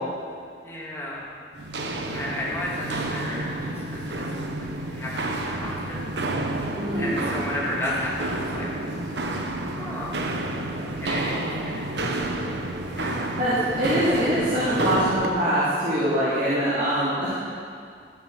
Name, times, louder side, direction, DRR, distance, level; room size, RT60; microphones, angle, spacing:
voice 1, 0.6-1.3 2.1-6.1 7.0-8.7 9.6-10.1 10.8-11.9 12.9-13.3 13.8-13.9 16.9-17.1, left 1 dB, 15° left, -6 dB, 2.5 m, -33 dB
Walk footsteps, 1.6-15.4, right 2 dB, 85° right, 1.0 m, -30 dB
voice 2, 6.7-7.2 13.4-17.4, equal, 45° right, -11 dB, 2.8 m, -23 dB
13.5 x 7.5 x 6.4 m, 2.3 s
head